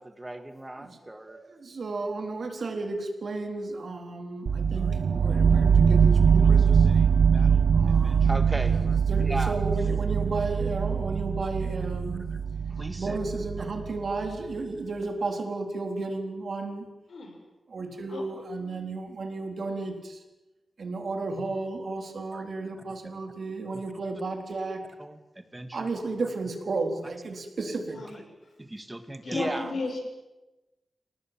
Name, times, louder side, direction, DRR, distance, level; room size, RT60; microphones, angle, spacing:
voice 1, 0.0-1.4 4.8-4.9 5.3-5.5 6.4-6.5 6.9-9.6 12.7-13.2 22.3-22.5 23.0-23.1 23.7-23.8 25.0-25.9 28.6-29.7, right 1 dB, 15° right, 9 dB, 2.0 m, -38 dB
voice 2, 1.3-6.8 7.7-8.3 9.1-12.3 13.0-16.9 17.7-20.2 20.8-24.9 25.7-28.0 29.3-29.8, right 3 dB, 65° right, 4 dB, 4.1 m, -33 dB
sound 1, 4.5-14.3, right 6 dB, 85° right, 1.0 m, -22 dB
voice 3, 29.2-30.0, left 3 dB, 70° left, 4 dB, 6.9 m, -33 dB
27.5 x 19.0 x 9.1 m, 1.1 s
wide cardioid pair, 130°, 0 cm